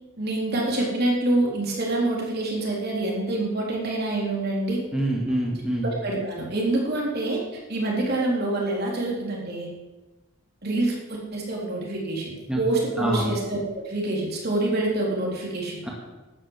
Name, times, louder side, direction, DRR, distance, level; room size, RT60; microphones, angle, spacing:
voice 1, 0.2-4.8 5.8-7.4 7.7-9.7 10.6-15.8, right 2 dB, 50° right, -2 dB, 3.7 m, -26 dB
voice 2, 4.9-5.9 12.5-12.6 13.0-13.3 15.8-15.9, right 1 dB, 5° right, -3 dB, 2.1 m, -25 dB
12.0 x 9.4 x 8.1 m, 1.1 s
head